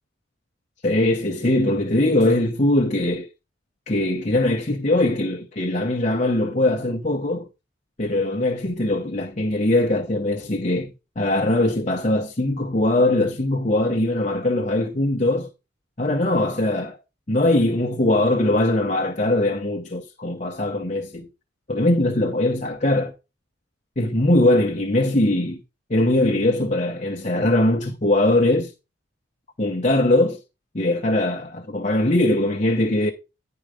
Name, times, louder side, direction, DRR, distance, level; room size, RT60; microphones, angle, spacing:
voice 1, 0.8-3.3 3.9-7.5 8.0-15.5 16.0-17.0 17.3-21.3 21.7-23.1 24.0-25.6 25.9-28.7 29.6-30.4 30.7-33.1, left 1 dB, 35° left, 0.9 m, -21 dB
10.5 x 4.8 x 4.9 m
head